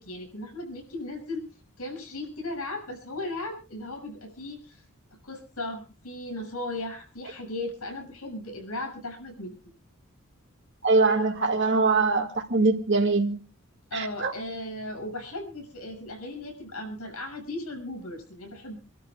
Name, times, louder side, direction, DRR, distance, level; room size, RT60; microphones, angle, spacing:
voice 1, 0.0-1.5 1.8-4.8 5.2-9.5 13.9-18.8, left 2 dB, 80° left, 7.1 m, -36 dB
voice 2, 10.8-13.4 13.9-14.3, right 3 dB, 55° right, 2.3 m, -23 dB
29.0 x 12.5 x 2.5 m
head